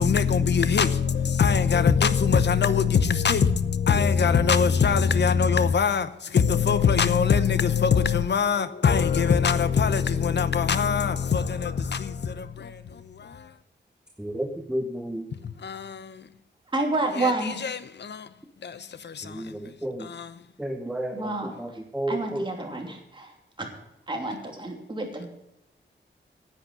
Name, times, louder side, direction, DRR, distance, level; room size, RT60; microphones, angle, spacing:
voice 1, 0.0-13.5 15.3-16.3 17.2-18.3 18.6-19.6 20.0-20.4, left 6 dB, 60° left, 0.8 m, -23 dB
voice 2, 14.2-15.3 19.2-20.1 20.6-22.5, right 1 dB, 5° right, 1.0 m, -32 dB
voice 3, 16.7-17.6 21.1-21.8 22.1-23.7 24.1-25.3, right 2 dB, 25° right, 2.9 m, -29 dB
10.0 x 8.8 x 7.7 m
wide cardioid pair, 120°, 20 cm